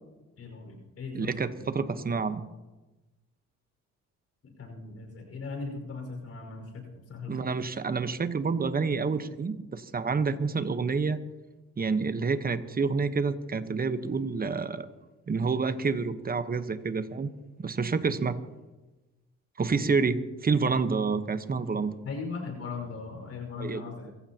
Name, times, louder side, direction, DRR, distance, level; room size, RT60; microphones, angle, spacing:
voice 1, 0.4-1.3 4.4-7.3 22.0-24.1, left 4 dB, 55° left, 3 dB, 5.2 m, -38 dB
voice 2, 1.1-2.4 7.3-11.2 11.8-14.9 15.3-17.3 17.6-18.4 19.6-21.9 23.6-23.8, right 4 dB, 30° right, 11 dB, 1.1 m, -28 dB
24.0 x 15.5 x 2.9 m, 1.1 s
cardioid pair, 90°, 30 cm